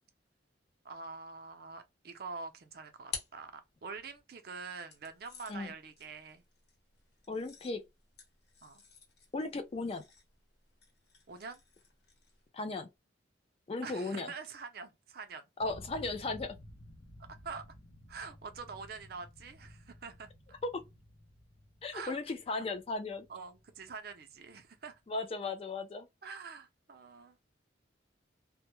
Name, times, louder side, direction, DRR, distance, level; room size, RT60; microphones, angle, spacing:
voice 1, 0.8-6.4 8.6-8.8 11.3-11.6 13.8-15.5 17.3-17.7 18.1-20.3 21.9-22.2 23.3-25.0 26.2-27.4, right 5 dB, 55° right, 0.5 m, -45 dB
sound 1, 2.4-4.2 4.9-12.5, left 6 dB, 60° left, 0.9 m, -51 dB
voice 2, 7.3-7.9 9.3-10.0 12.5-12.9 13.7-14.3 15.6-16.6 20.6-20.8 21.8-23.3 25.1-26.1, left 3 dB, 30° left, 0.3 m, -36 dB
sound 2, 15.6-24.4, left 1 dB, 85° left, 0.6 m, -54 dB
2.1 x 2.0 x 2.9 m
head